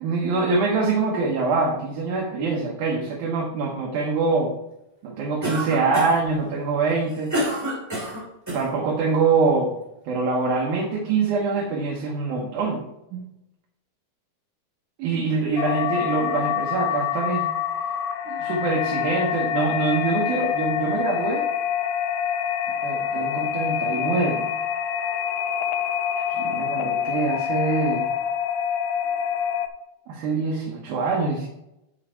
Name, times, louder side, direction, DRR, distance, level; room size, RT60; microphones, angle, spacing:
voice 1, 0.0-4.6 5.0-7.3 8.5-9.8 10.1-12.8 13.1-13.3 15.0-17.5 18.3-21.4 22.8-24.5 26.2-28.1 30.1-31.5, right 4 dB, 85° right, -1 dB, 2.5 m, -24 dB
Cough, 5.4-6.3 6.9-8.7, equal, 5° right, 2.0 m, -28 dB
sound 1, 15.6-29.7, left 8 dB, 80° left, 1.8 m, -26 dB
9.3 x 5.0 x 4.5 m, 0.88 s
omnidirectional pair, 3.4 m